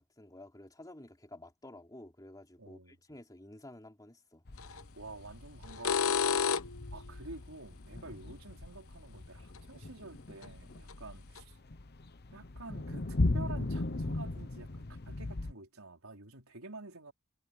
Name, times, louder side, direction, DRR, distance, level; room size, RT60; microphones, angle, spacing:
voice 1, 0.0-4.4, left 1 dB, 20° left, 3.2 m, -52 dB
voice 2, 2.6-3.0 5.0-6.5 6.9-11.6 12.3-17.1, right 2 dB, 80° right, 4.6 m, -49 dB
sound 1, 4.5-15.5, left 2 dB, 50° left, 1.0 m, -38 dB
sound 2, 4.6-4.8 5.6-6.9 9.6-9.7 10.4-10.5 10.9-11.0 11.4-11.5, left 6 dB, 75° left, 1.1 m, -30 dB
head